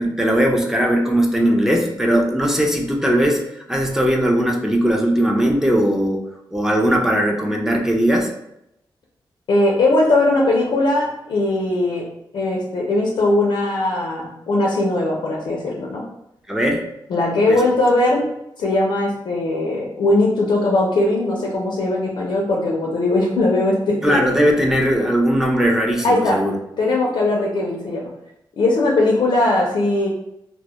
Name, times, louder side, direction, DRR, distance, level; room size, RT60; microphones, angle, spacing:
voice 1, 0.0-3.4 3.7-6.2 6.5-8.3 16.5-16.8 17.5-17.6 24.0-26.6, equal, 5° right, 0 dB, 0.4 m, -18 dB
voice 2, 9.5-12.0 12.3-16.0 17.1-18.3 18.6-24.2 26.0-26.4 26.8-28.0 28.6-30.1, left 2 dB, 75° left, -2 dB, 0.4 m, -19 dB
2.1 x 2.0 x 2.8 m, 0.82 s
wide cardioid pair, 105°, 8 cm